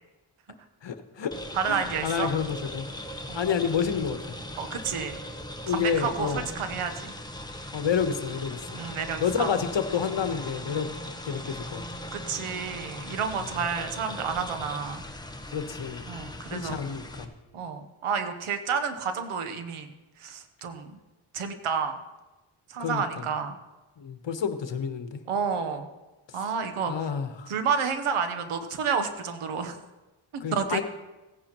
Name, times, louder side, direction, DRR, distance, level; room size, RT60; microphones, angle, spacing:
voice 1, 0.8-1.3 1.7-2.9 3.3-4.2 5.6-6.4 7.7-8.6 9.2-10.9 11.2-11.8 13.4-13.5 15.5-16.0 16.5-17.3 22.8-23.0 24.0-25.2 26.8-27.5 30.4-30.8, left 7 dB, 60° left, 9 dB, 1.2 m, -29 dB
sound 1, 1.3-17.2, left 1 dB, 10° left, 1.1 m, -39 dB
voice 2, 1.5-2.3 3.3-3.4 4.6-5.2 5.7-7.1 8.7-9.5 12.1-15.0 16.1-16.8 17.5-19.9 20.2-21.0 21.3-22.0 22.7-23.5 25.3-25.9 26.3-27.1 27.5-29.8 30.3-30.8, right 6 dB, 90° right, 8 dB, 1.1 m, -30 dB
17.0 x 9.7 x 3.0 m, 1.1 s
cardioid pair, 55°, 49 cm